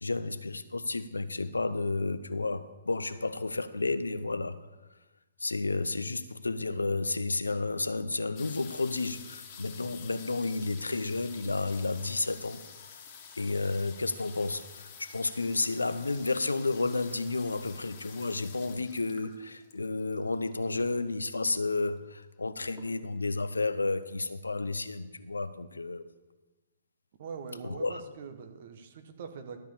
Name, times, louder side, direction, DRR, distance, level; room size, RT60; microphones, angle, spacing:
voice 1, 0.0-4.6 5.4-12.6 13.4-26.0 27.6-28.0, left 3 dB, 85° left, 0.6 m, -31 dB
sound 1, 8.4-20.9 21.7-21.8 22.0-22.4 22.7-23.3 23.8-23.9 24.1-24.2, left 7 dB, 40° left, 1.6 m, -49 dB
voice 2, 27.2-29.6, right 6 dB, 50° right, 1.2 m, -43 dB
12.5 x 5.4 x 7.1 m
figure-of-eight pair, 125°, 0 cm